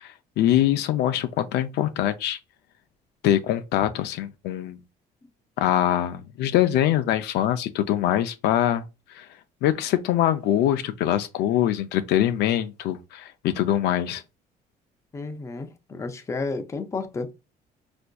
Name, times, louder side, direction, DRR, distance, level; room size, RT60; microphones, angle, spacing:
voice 1, 0.0-2.4 3.2-4.8 5.6-8.8 9.1-9.3 9.6-14.2, left 12 dB, 80° left, 0.4 m, -23 dB
voice 2, 15.1-17.3, left 3 dB, 15° left, 0.4 m, -32 dB
4.3 x 2.5 x 2.2 m
cardioid pair, 110°, 17 cm